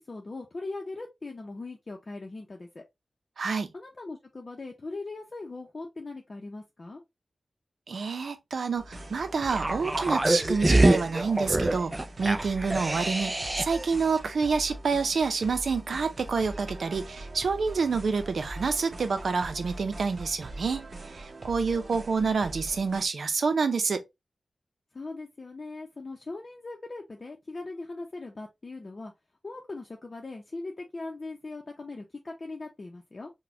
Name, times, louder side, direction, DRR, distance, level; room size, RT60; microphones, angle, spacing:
voice 1, 0.0-2.8 3.7-7.0 24.9-29.1 29.4-33.3, left 3 dB, 45° left, 0.6 m, -40 dB
voice 2, 3.4-3.7 7.9-24.0, right 4 dB, 85° right, 0.6 m, -28 dB
sound 1, 8.8-23.1, right 1 dB, 55° right, 0.8 m, -42 dB
sound 2, 9.5-13.9 14.2-14.3, right 1 dB, 20° right, 0.3 m, -25 dB
4.1 x 2.2 x 2.7 m
wide cardioid pair, 90°, 0 cm